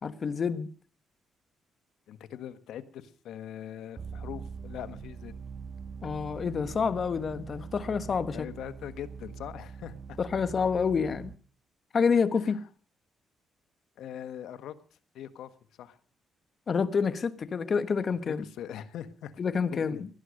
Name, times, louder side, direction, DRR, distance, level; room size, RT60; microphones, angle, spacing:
voice 1, 0.0-0.7 6.0-8.5 10.2-11.3 11.9-12.6 16.7-18.4 19.4-20.1, left 5 dB, 45° left, 1.3 m, -28 dB
voice 2, 2.1-5.3 8.3-10.2 12.4-12.6 14.0-14.7 15.1-15.5 15.8-16.0 18.1-19.3 19.7-20.1, left 10 dB, 80° left, 1.3 m, -42 dB
sound 1, 4.0-11.4, right 6 dB, 45° right, 1.2 m, -43 dB
19.0 x 11.5 x 6.4 m
cardioid pair, 90°, 0 cm